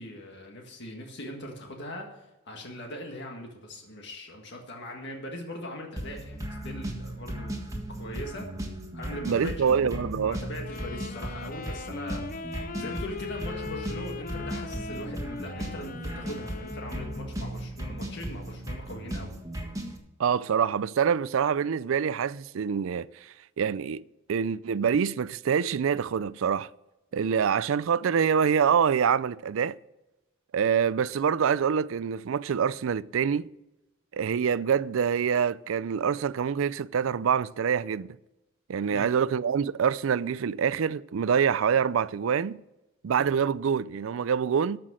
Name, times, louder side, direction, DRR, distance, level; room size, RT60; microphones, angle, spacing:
voice 1, 0.0-7.7 8.0-8.5 8.9-12.3 12.8-19.3 38.9-39.1, left 1 dB, 55° left, 1.8 m, -40 dB
sound 1, 6.0-20.0, right 1 dB, 15° right, 1.5 m, -36 dB
voice 2, 9.2-10.4 20.2-23.1 23.6-24.0 24.3-26.7 27.1-29.8 30.5-33.5 34.1-38.1 38.7-42.6 43.0-44.8, right 7 dB, 70° right, 0.4 m, -25 dB
Wind instrument woodwind instrument, 10.6-17.4, left 5 dB, 40° left, 0.6 m, -40 dB
13.5 x 6.1 x 6.2 m
head